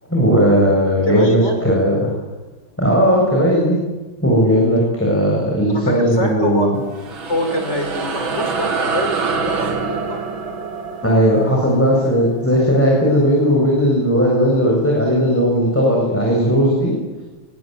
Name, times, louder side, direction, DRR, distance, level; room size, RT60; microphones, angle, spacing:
voice 1, 0.1-2.0 2.8-3.8 4.2-6.8 11.0-16.9, equal, 5° left, -2 dB, 7.7 m, -16 dB
voice 2, 0.9-1.6 5.8-6.7 7.3-10.2, left 1 dB, 35° left, 4 dB, 5.8 m, -24 dB
sound 1, 6.7-13.6, right 4 dB, 90° right, 3.5 m, -26 dB
25.0 x 24.5 x 9.5 m, 1.2 s
omnidirectional pair, 2.1 m